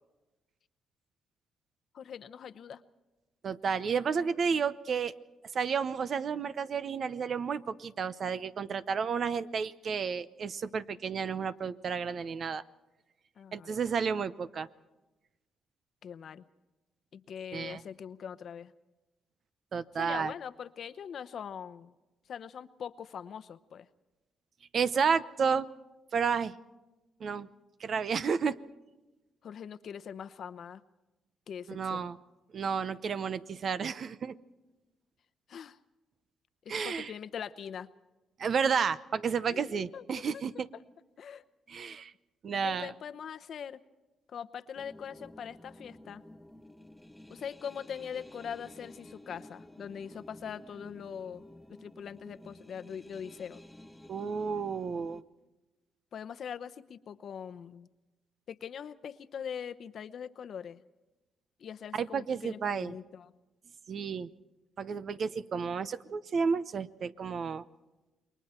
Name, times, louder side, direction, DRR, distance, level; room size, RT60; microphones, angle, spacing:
voice 1, 1.9-2.8 13.4-13.8 16.0-16.4 17.1-18.7 19.9-21.9 22.3-23.9 29.4-30.8 31.5-32.1 35.5-35.8 36.6-37.9 39.5-40.0 40.7-40.8 41.2-41.4 42.6-43.8 44.3-46.2 47.3-51.4 51.8-53.6 56.1-57.9 58.5-60.8 61.6-63.3, left 8 dB, 60° left, 12 dB, 0.9 m, -42 dB
voice 2, 3.4-5.1 5.5-12.6 13.5-14.7 17.5-17.8 19.7-20.3 24.7-25.7 26.1-26.6 27.2-27.5 27.8-28.6 31.7-32.2 32.5-34.3 36.7-37.1 38.4-40.7 41.7-42.1 42.4-42.9 54.1-55.2 62.0-62.9 63.9-64.3 64.8-67.6, right 6 dB, 50° right, 14 dB, 0.8 m, -31 dB
sound 1, 44.8-55.2, left 1 dB, 5° left, 0.9 m, -52 dB
28.5 x 22.5 x 4.4 m, 1.1 s
cardioid pair, 90°, 0 cm